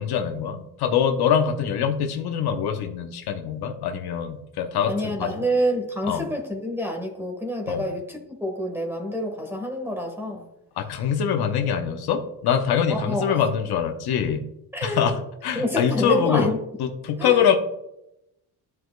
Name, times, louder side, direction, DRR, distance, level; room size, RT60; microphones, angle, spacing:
voice 1, 0.0-5.4 6.0-6.3 7.7-7.9 10.8-14.4 14.8-16.5 16.8-17.6, left 7 dB, 70° left, 5 dB, 0.9 m, -24 dB
voice 2, 4.9-10.4 12.9-13.3 14.7-15.1 15.5-16.6 17.2-17.4, equal, 5° right, 3 dB, 1.4 m, -27 dB
13.0 x 4.7 x 2.2 m, 0.83 s
cardioid pair, 140°, 40 cm